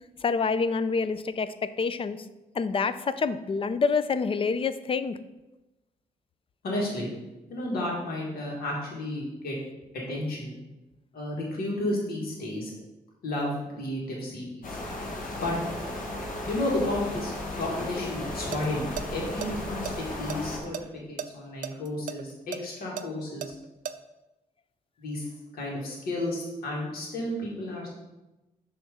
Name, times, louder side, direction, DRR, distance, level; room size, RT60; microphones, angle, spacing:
voice 1, 0.2-2.2 2.5-5.2, left 5 dB, 35° left, 13 dB, 0.4 m, -27 dB
voice 2, 6.6-7.1 7.5-9.6 9.9-10.5 11.1-12.7 13.2-14.8 15.4-15.5 16.4-20.8 21.1-23.5 25.0-27.9, left 1 dB, 80° left, -3 dB, 1.7 m, -32 dB
sound 1, 14.6-20.6, left 1 dB, 60° left, 1.4 m, -35 dB
sound 2, 18.3-18.7 19.0-19.1 19.4-20.8 21.2-21.3 21.6-23.9, right 9 dB, 60° right, 0.4 m, -35 dB
6.3 x 3.1 x 5.0 m, 1.0 s
cardioid pair, 70°, 15 cm